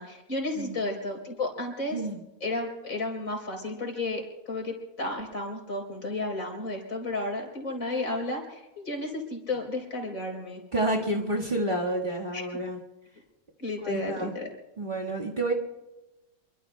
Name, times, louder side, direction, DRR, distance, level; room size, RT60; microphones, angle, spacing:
voice 1, 0.0-2.0 2.4-10.6 12.3-12.4 13.6-14.5, left 2 dB, 60° left, 0 dB, 4.2 m, -33 dB
voice 2, 10.7-12.8 13.8-14.3 14.8-15.5, right 1 dB, 30° right, -2 dB, 1.7 m, -29 dB
28.5 x 23.0 x 2.2 m, 1.1 s
omnidirectional pair, 1.6 m